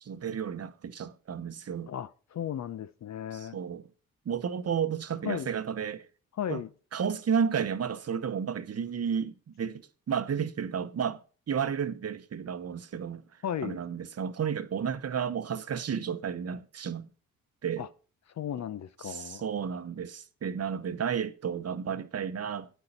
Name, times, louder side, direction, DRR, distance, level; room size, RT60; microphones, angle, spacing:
voice 1, 0.0-1.9 3.3-3.9 4.2-6.1 6.5-6.6 6.9-11.2 11.5-13.2 13.6-17.1 17.6-17.9 19.0-22.7, right 7 dB, 40° right, 0.9 m, -32 dB
voice 2, 1.9-3.6 5.2-5.5 6.4-6.7 13.4-13.8 17.8-17.9 18.4-19.4, left 9 dB, 45° left, 0.7 m, -35 dB
9.3 x 7.7 x 4.3 m
hypercardioid pair, 45°, 37 cm